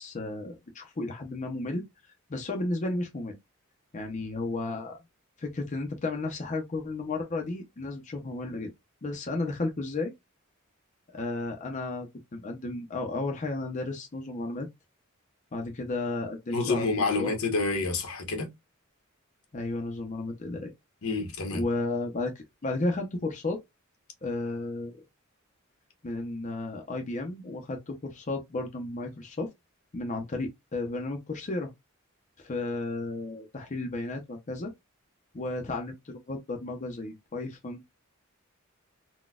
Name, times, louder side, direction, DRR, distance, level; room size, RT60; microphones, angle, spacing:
voice 1, 0.0-1.8 2.3-3.4 3.9-5.0 5.4-8.7 9.0-10.1 11.1-12.1 12.3-14.7 15.5-16.9 17.2-17.3 19.5-20.7 21.5-23.6 24.2-25.0 26.0-29.5 29.9-31.7 32.4-34.7 35.3-37.8, left 2 dB, 35° left, 0.6 m, -33 dB
voice 2, 16.5-18.5 21.0-21.6, left 3 dB, 80° left, 1.1 m, -28 dB
3.9 x 2.2 x 2.3 m
head